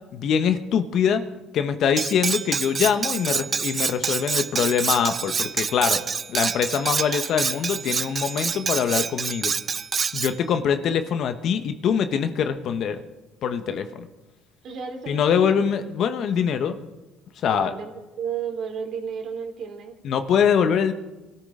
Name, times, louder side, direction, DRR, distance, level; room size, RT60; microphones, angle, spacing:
voice 1, 0.1-1.2 1.5-6.0 6.3-9.5 10.1-13.0 13.4-14.1 15.1-16.8 17.4-17.7 20.0-20.9, left 7 dB, 60° left, 9 dB, 1.1 m, -23 dB
Cutlery silverware, 2.0-10.3, right 5 dB, 35° right, 0.4 m, -27 dB
voice 2, 14.6-15.5 17.5-17.9 18.2-20.0, right 6 dB, 60° right, 4 dB, 3.0 m, -32 dB
23.0 x 13.5 x 3.8 m, 1.1 s
cardioid pair, 95°, 0 cm